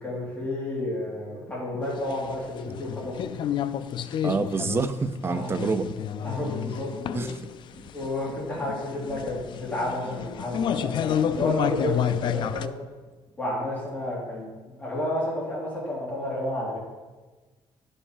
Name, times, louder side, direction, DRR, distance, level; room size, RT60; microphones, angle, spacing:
voice 1, 0.0-3.5 5.3-5.6 6.2-7.3 7.9-12.7 13.4-14.5 14.8-16.8, left 1 dB, 15° left, 2.9 m, -31 dB
sound 1, 2.0-12.7, left 9 dB, 55° left, 0.4 m, -30 dB
voice 2, 4.2-6.0 7.1-7.5 7.8-7.9, right 4 dB, 25° right, 0.5 m, -27 dB
10.5 x 5.4 x 4.9 m
cardioid pair, 150°, 10 cm